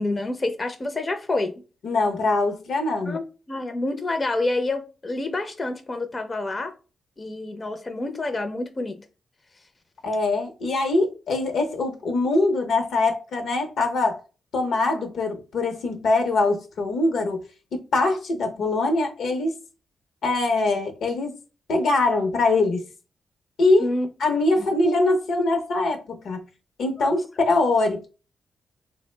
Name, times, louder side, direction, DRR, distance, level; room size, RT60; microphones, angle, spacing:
voice 1, 0.0-1.6 3.1-6.7 7.2-9.0 23.8-24.1 24.6-24.7 27.0-27.2, left 2 dB, 30° left, 0.4 m, -28 dB
voice 2, 1.8-3.2 10.0-14.2 14.5-17.4 17.7-19.5 20.2-21.3 21.7-22.9 23.6-23.9 24.2-26.4 26.8-28.1, left 2 dB, 80° left, 0.6 m, -23 dB
3.1 x 2.0 x 3.1 m
cardioid pair, 75°, 0 cm